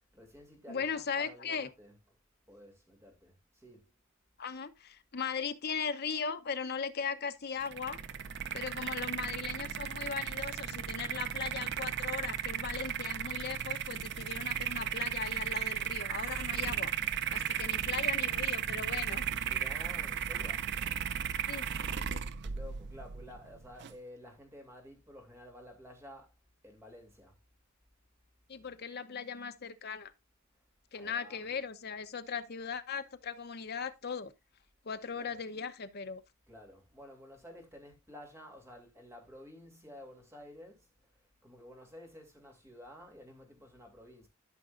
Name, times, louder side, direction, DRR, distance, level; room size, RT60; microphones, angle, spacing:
voice 1, 0.0-2.2 2.5-3.9 19.1-20.8 22.4-26.3 26.6-27.4 30.9-31.6 35.1-35.4 36.5-44.3, left 1 dB, 15° right, 2.7 m, -52 dB
voice 2, 0.7-1.7 4.4-8.0 8.5-19.3 21.5-21.7 22.1-22.2 28.5-30.1 30.9-34.3 34.8-36.2, left 6 dB, 50° left, 0.8 m, -38 dB
sound 1, 7.6-23.9, right 9 dB, 55° right, 0.5 m, -35 dB
13.5 x 6.0 x 2.5 m
head